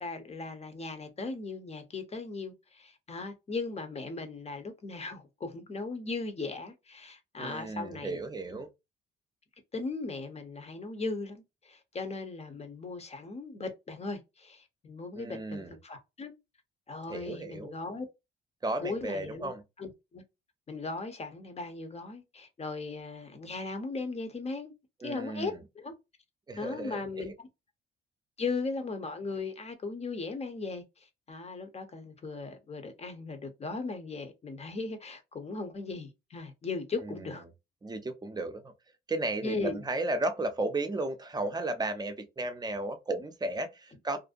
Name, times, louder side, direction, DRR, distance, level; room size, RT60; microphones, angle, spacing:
voice 1, 0.0-8.2 8.5-8.6 9.7-16.3 16.9-18.1 18.8-19.5 19.8-20.2 20.7-24.7 25.0-25.9 26.6-27.3 28.4-30.8 31.3-37.4 39.4-39.8, left 3 dB, 30° left, 0.8 m, -38 dB
voice 2, 7.4-8.7 15.2-15.8 17.1-17.7 18.6-19.6 25.0-25.6 26.5-27.3 37.0-37.3 37.8-38.7 39.1-44.2, right 2 dB, 20° right, 0.6 m, -34 dB
2.6 x 2.1 x 2.5 m
cardioid pair, 90°, 20 cm